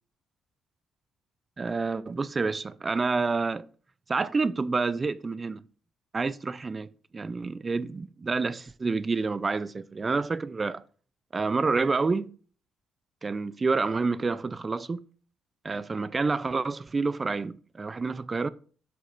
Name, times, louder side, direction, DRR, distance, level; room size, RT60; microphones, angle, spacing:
voice 1, 1.6-3.7 4.1-5.6 6.1-10.8 11.3-12.3 13.2-15.0 15.6-18.5, right 4 dB, 30° right, 0.4 m, -28 dB
8.6 x 6.5 x 2.5 m
cardioid pair, 90°, 0 cm